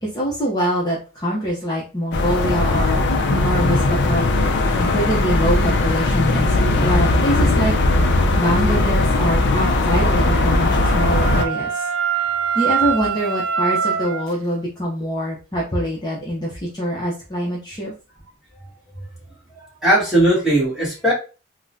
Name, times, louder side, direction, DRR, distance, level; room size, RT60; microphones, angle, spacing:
voice 1, 0.0-3.0 3.3-4.3 4.8-7.7 8.4-11.9 12.2-17.9, equal, 20° left, -5 dB, 0.7 m, -24 dB
sound 1, 2.1-11.5, left 2 dB, 55° left, 0.5 m, -18 dB
Wind instrument woodwind instrument, 9.6-14.3, right 7 dB, 65° right, 0.3 m, -24 dB
voice 2, 19.5-21.1, right 1 dB, ahead, -8 dB, 1.5 m, -18 dB
3.6 x 2.1 x 2.6 m, 0.33 s
head